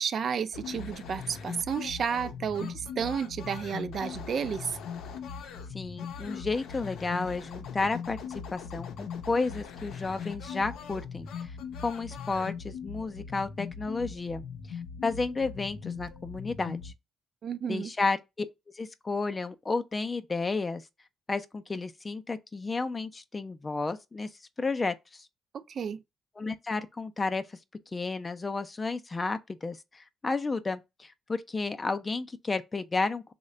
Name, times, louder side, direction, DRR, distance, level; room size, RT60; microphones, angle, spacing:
voice 1, 0.0-4.8 17.4-17.9 25.5-26.0, right 7 dB, 55° right, 0.4 m, -32 dB
sound 1, 0.5-16.9, left 6 dB, 80° left, 0.5 m, -40 dB
voice 2, 5.7-8.2 8.5-11.5 11.8-14.4 14.7-16.9 17.7-18.5 18.7-20.8 21.3-24.3 24.6-25.3 26.4-27.4 27.9-33.3, left 3 dB, 25° left, 0.3 m, -32 dB
3.1 x 2.1 x 3.7 m
cardioid pair, 90°, 0 cm